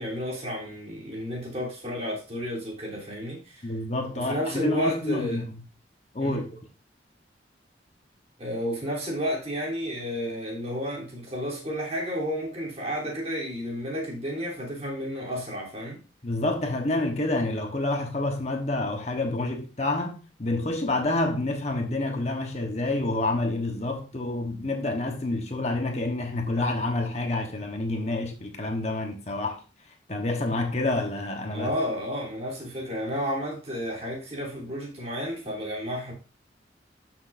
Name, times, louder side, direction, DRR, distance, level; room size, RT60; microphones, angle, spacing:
voice 1, 0.0-3.7 4.1-5.4 6.2-6.5 8.4-16.0 31.5-36.1, equal, 35° right, 3.4 m, -32 dB
voice 2, 3.6-5.5 6.1-6.4 16.2-29.6 30.1-31.7, left 2 dB, 35° left, 1.2 m, -28 dB
12.5 x 6.2 x 2.7 m
head